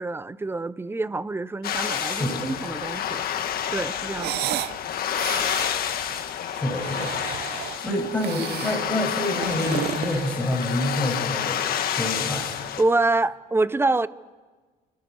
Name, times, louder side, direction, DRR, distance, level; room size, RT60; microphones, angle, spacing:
voice 1, 0.0-3.2 3.7-4.6 7.8-8.0 12.8-14.1, right 2 dB, 15° right, 18 dB, 0.5 m, -26 dB
sound 1, 1.6-12.8, left 9 dB, 60° left, 1.6 m, -29 dB
voice 2, 1.8-2.4 6.5-7.1 7.8-11.6 12.0-12.5, left 1 dB, 5° left, 0 dB, 6.2 m, -27 dB
sound 2, 4.1-4.8 5.1-5.8 6.6-7.8 8.2-8.9 9.3-10.8, right 15 dB, 75° right, 0.6 m, -32 dB
29.0 x 14.0 x 6.3 m, 1.4 s
cardioid pair, 110°, 17 cm